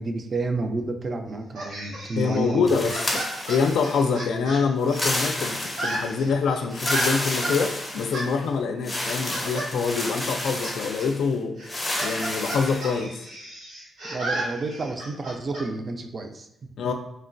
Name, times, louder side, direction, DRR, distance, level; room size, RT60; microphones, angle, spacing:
voice 1, 0.0-2.8 14.0-16.7, right 3 dB, 35° right, 6 dB, 0.3 m, -30 dB
sound 1, 1.5-5.3 5.6-7.6 8.1-8.3 8.9-9.7 10.0-10.7 11.0-11.1 11.6-15.6, right 1 dB, 90° right, 1.2 m, -34 dB
voice 2, 2.2-3.2 3.5-11.6 12.0-13.2 16.8-16.9, left 5 dB, 90° left, 5 dB, 0.4 m, -25 dB
sound 2, 2.7-4.2 4.8-6.2 6.7-8.4 8.8-11.2 11.7-12.9, left 1 dB, 20° left, 0.6 m, -30 dB
3.0 x 2.2 x 2.5 m, 0.82 s
wide cardioid pair, 140°, 0 cm